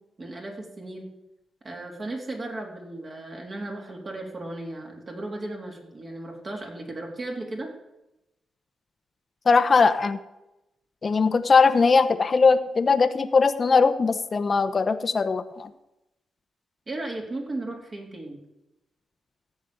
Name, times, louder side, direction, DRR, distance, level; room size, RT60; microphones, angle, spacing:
voice 1, 0.2-1.1 1.6-7.7 16.9-18.4, right 2 dB, 40° right, 0 dB, 3.3 m, -35 dB
voice 2, 9.5-10.2 11.0-15.7, left 4 dB, 45° left, 10 dB, 0.8 m, -20 dB
14.0 x 5.2 x 9.2 m, 0.94 s
cardioid pair, 75°, 0 cm